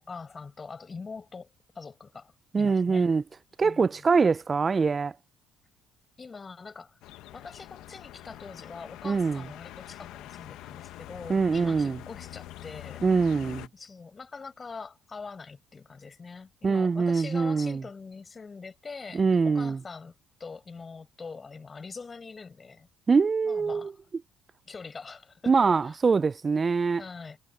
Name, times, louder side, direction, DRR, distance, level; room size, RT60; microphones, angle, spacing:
voice 1, 0.0-3.1 3.6-4.1 6.2-7.0 7.3-13.1 13.7-22.9 23.4-24.0 24.7-26.0 27.0-27.4, left 4 dB, 30° left, 5.3 m, -43 dB
voice 2, 2.5-3.2 3.6-5.1 9.0-9.4 11.3-12.0 13.0-13.7 16.6-17.8 19.1-19.8 23.1-23.9 25.5-27.0, right 5 dB, 30° right, 0.4 m, -24 dB
sound 1, 7.0-13.7, left 15 dB, 75° left, 1.1 m, -45 dB
supercardioid pair, 85°, 0 cm